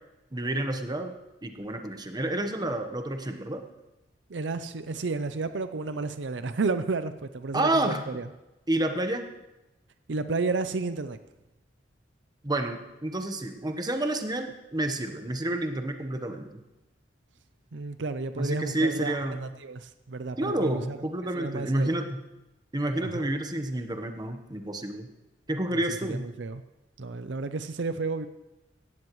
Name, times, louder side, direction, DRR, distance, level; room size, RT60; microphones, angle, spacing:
voice 1, 0.3-1.1 1.4-3.6 7.5-8.0 8.7-9.2 12.4-16.5 18.4-19.4 20.4-22.2 22.7-25.1 25.5-26.3, right 1 dB, 20° right, 5 dB, 1.1 m, -29 dB
voice 2, 4.3-8.3 10.1-11.2 17.7-21.0 21.4-21.9 23.0-23.3 25.7-25.8 26.1-26.6 27.0-28.3, right 3 dB, 70° right, 11 dB, 0.6 m, -32 dB
17.5 x 14.5 x 3.1 m, 0.96 s
head